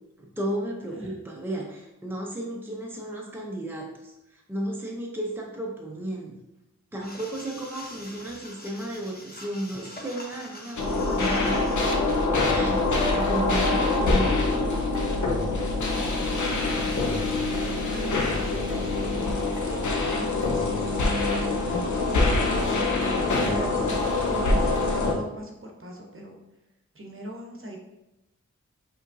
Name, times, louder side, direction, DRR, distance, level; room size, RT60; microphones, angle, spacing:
voice 1, 0.2-6.4 6.9-14.6, right 1 dB, 5° right, -1 dB, 0.6 m, -34 dB
sound 1, 7.0-12.3, left 1 dB, 30° left, 0.8 m, -44 dB
sound 2, 10.8-25.1, left 3 dB, 85° left, 0.7 m, -24 dB
voice 2, 15.9-16.5 16.8-16.9 17.4-22.8 23.4-26.4 26.9-27.8, equal, 45° right, 0 dB, 0.8 m, -40 dB
5.0 x 3.0 x 2.6 m, 0.91 s
wide cardioid pair, 85°, 29 cm